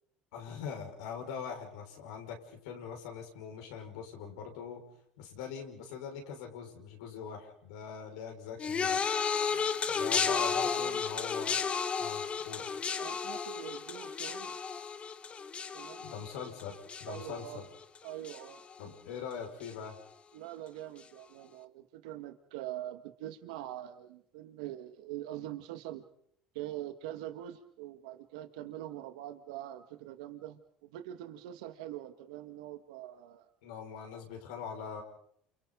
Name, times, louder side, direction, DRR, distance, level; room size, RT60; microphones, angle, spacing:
voice 1, 0.3-4.8 5.2-9.0 9.9-11.6 12.0-12.7 16.0-16.7 17.0-17.7 18.8-20.0 33.6-35.0, left 7 dB, 85° left, 1 dB, 5.9 m, -42 dB
sound 1, 8.6-18.0 18.2-18.8 19.6-19.7, left 6 dB, 35° left, 1.4 m, -33 dB
voice 2, 10.3-11.0 13.0-14.6 15.7-16.1 17.1-17.6 18.0-18.6 20.3-26.1 26.5-33.5, right 13 dB, 80° right, 8 dB, 1.9 m, -44 dB
29.5 x 28.5 x 4.0 m, 0.64 s
hypercardioid pair, 80°, 3 cm